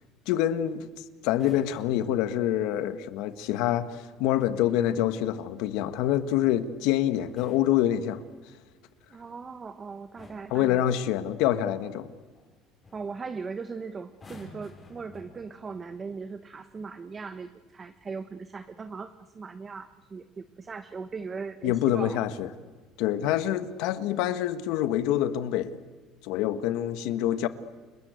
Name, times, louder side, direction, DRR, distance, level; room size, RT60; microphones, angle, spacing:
voice 1, 0.3-8.2 10.5-12.1 21.6-22.5 23.0-25.8 26.2-27.5, left 12 dB, 75° left, 1.6 m, -26 dB
sound 1, 1.3-2.3 4.4-5.0 7.1-8.5 9.5-9.8 10.2-10.7 12.3-12.5 12.8-13.1 14.1-15.8 16.7-16.9, left 2 dB, 20° left, 5.5 m, -52 dB
voice 2, 9.1-11.0 12.9-22.3, right 4 dB, 25° right, 1.0 m, -39 dB
29.0 x 21.0 x 8.2 m
cardioid pair, 140°, 0 cm